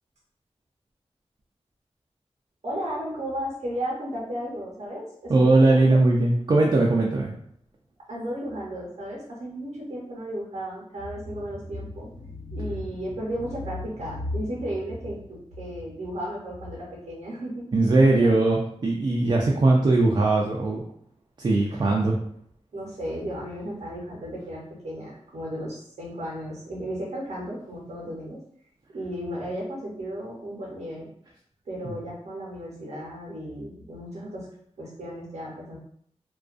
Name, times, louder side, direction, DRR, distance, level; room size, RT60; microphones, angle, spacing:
voice 1, 2.6-6.0 8.1-17.6 18.2-18.3 21.7-21.9 22.7-28.4 28.9-31.1 31.7-34.5 34.8-35.8, equal, 80° right, -4 dB, 0.8 m, -34 dB
voice 2, 5.3-7.3 17.7-20.8 21.4-22.2 31.8-32.0, right 2 dB, 45° right, -2 dB, 0.4 m, -20 dB
2.4 x 2.2 x 2.4 m, 0.66 s
wide cardioid pair, 85°, 11 cm